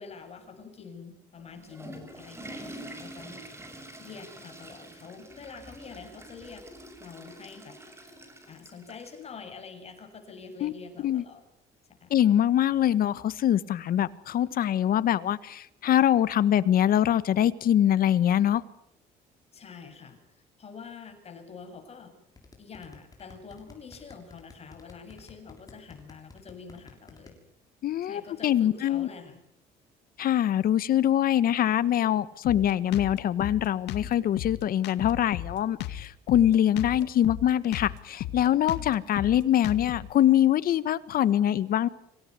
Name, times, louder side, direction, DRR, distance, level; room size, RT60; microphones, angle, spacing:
voice 1, 0.0-3.7 4.0-6.6 7.0-7.8 8.5-11.4 12.0-12.1 19.5-20.2 20.6-22.1 22.6-27.4 28.0-29.4, left 5 dB, 40° left, 5 dB, 7.2 m, -46 dB
Water / Toilet flush, 1.4-9.2, right 1 dB, 15° right, 6.2 m, -46 dB
voice 2, 12.1-18.6 27.8-29.1 30.2-41.9, left 11 dB, 60° left, 16 dB, 1.4 m, -24 dB
sound 1, 22.4-27.3, left 4 dB, 20° left, 6.5 m, -50 dB
Drum kit, 32.4-40.1, left 12 dB, 80° left, 2.0 m, -36 dB
26.5 x 17.5 x 9.7 m, 0.76 s
cardioid pair, 110°, 17 cm